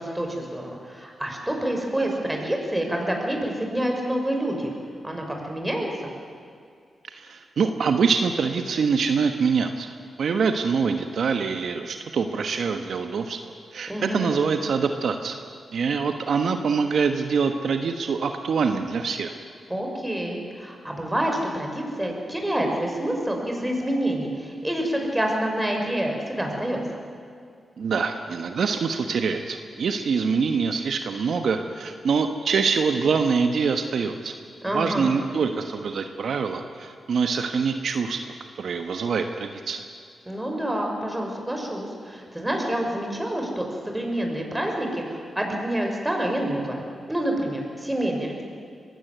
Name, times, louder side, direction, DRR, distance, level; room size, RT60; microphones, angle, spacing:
voice 1, 0.0-4.7 5.0-6.1 13.9-14.4 19.7-26.8 34.6-35.1 40.3-46.8 47.1-48.4, right 1 dB, 10° right, 1 dB, 5.9 m, -27 dB
voice 2, 7.1-9.9 10.2-15.4 15.7-19.3 27.8-34.3 34.7-39.8, right 5 dB, 75° right, 6 dB, 1.3 m, -25 dB
22.0 x 16.0 x 9.4 m, 2.3 s
cardioid pair, 60°, 0 cm